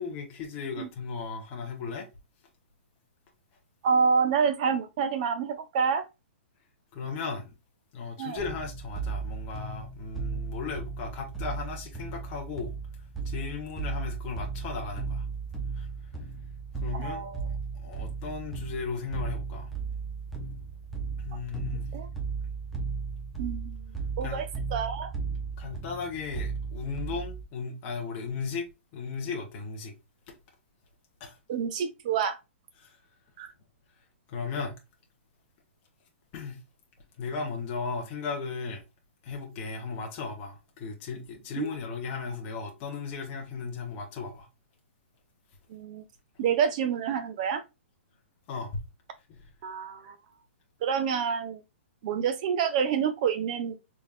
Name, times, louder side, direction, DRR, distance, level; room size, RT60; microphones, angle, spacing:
voice 1, 0.0-2.1 6.9-7.5 7.9-12.7 13.2-15.3 15.8-15.9 16.8-17.2 17.8-19.7 21.2-21.9 24.2-24.4 25.3-28.7 28.9-29.9 31.2-31.4 32.8-33.0 34.3-34.7 36.3-36.6 37.2-38.8 39.2-44.5 48.5-48.8 49.3-49.4, left 5 dB, 25° left, 1.0 m, -36 dB
voice 2, 3.8-6.0 8.2-8.4 16.9-17.5 21.6-21.7 21.9-22.1 23.4-23.9 24.2-25.1 31.5-32.4 33.4-33.5 41.6-41.7 45.7-46.0 46.4-47.6 49.6-50.2 50.8-51.6 52.0-53.8, right 6 dB, 35° right, 0.7 m, -28 dB
sound 1, 8.4-27.4, right 5 dB, ahead, 0.7 m, -35 dB
4.1 x 3.5 x 2.4 m
hypercardioid pair, 165°, 7 cm